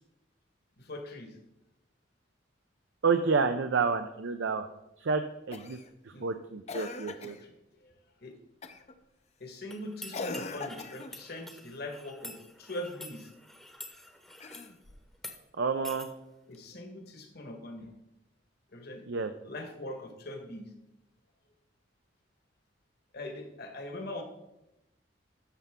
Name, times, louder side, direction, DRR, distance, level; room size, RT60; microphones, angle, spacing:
voice 1, 0.8-1.3 6.1-6.3 7.2-7.5 7.8-7.9 8.2-8.3 9.4-13.3 16.5-17.9 18.7-19.0 19.4-20.7 23.1-24.2, left 1 dB, 55° left, 4 dB, 1.5 m, -42 dB
voice 2, 3.0-4.7 5.0-5.2 5.5-5.8 6.2-7.4 15.6-16.1 19.1-19.3, right 5 dB, 70° right, 7 dB, 0.5 m, -29 dB
Cough, 5.5-5.9 6.7-7.4 8.6-8.9 10.1-11.2 14.3-15.1 16.5-16.6, left 3 dB, 35° left, 0.6 m, -40 dB
sound 1, 9.7-14.7 15.1-15.4 15.8-16.1, left 1 dB, ahead, 0.9 m, -47 dB
11.5 x 6.8 x 3.7 m, 0.91 s
head